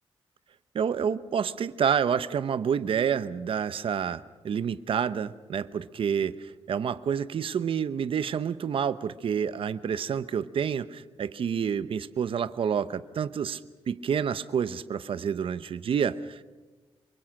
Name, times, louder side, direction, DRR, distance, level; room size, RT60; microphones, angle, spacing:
voice 1, 0.7-13.6 13.9-16.4, right 7 dB, 60° right, 14 dB, 0.9 m, -28 dB
26.5 x 24.0 x 6.5 m, 1.2 s
wide cardioid pair, 115°, 10 cm